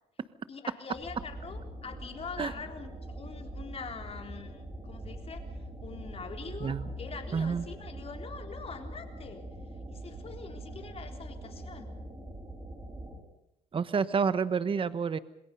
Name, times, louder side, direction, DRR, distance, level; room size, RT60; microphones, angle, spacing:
voice 1, 0.5-9.5 9.9-12.0, left 5 dB, 35° left, 4 dB, 3.8 m, -44 dB
sound 1, 0.9-13.2, right 1 dB, 15° right, 6.0 m, -43 dB
voice 2, 7.3-7.6 13.7-15.2, right 6 dB, 30° right, 14 dB, 1.1 m, -29 dB
27.0 x 21.0 x 5.4 m, 0.81 s
cardioid pair, 110°, 17 cm